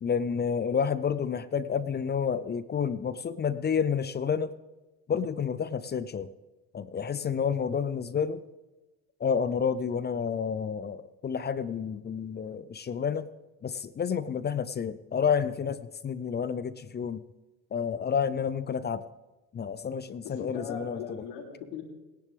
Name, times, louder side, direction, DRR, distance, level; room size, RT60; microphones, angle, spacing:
voice 1, 0.0-4.5 5.1-6.3 6.7-8.4 9.2-13.3 13.6-17.2 17.7-19.0 19.5-21.2, left 7 dB, 25° left, 15 dB, 0.5 m, -30 dB
voice 2, 20.2-21.8, left 7 dB, 70° left, -1 dB, 3.9 m, -39 dB
18.5 x 10.5 x 3.5 m, 1.1 s
supercardioid pair, 85°, 43 cm